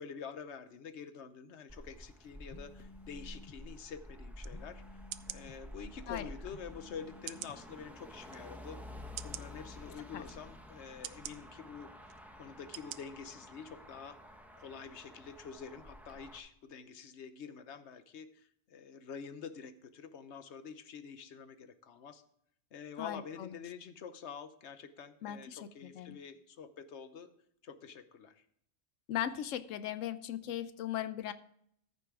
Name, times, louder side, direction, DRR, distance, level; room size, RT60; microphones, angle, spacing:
voice 1, 0.0-8.8 9.2-11.9 12.3-14.2 14.6-22.2 22.7-27.3 27.6-28.4, left 6 dB, 65° left, 11 dB, 1.0 m, -47 dB
Motor vehicle (road), 1.7-16.4, left 1 dB, ahead, 1.0 m, -50 dB
sound 1, 2.5-3.6 4.5-5.6 6.5-7.6, left 4 dB, 45° left, 0.5 m, -55 dB
sound 2, 4.4-4.5 5.1-5.4 6.2-6.3 7.3-7.6 8.3-8.4 9.2-9.5 10.2-10.4 11.0-11.4 12.1-12.2 12.7-13.0 13.4-13.5, right 12 dB, 80° right, 0.9 m, -43 dB
voice 2, 23.0-23.5 25.2-26.2 29.1-31.3, left 11 dB, 85° left, 14 dB, 1.0 m, -38 dB
14.0 x 6.8 x 3.6 m, 0.70 s
omnidirectional pair, 1.3 m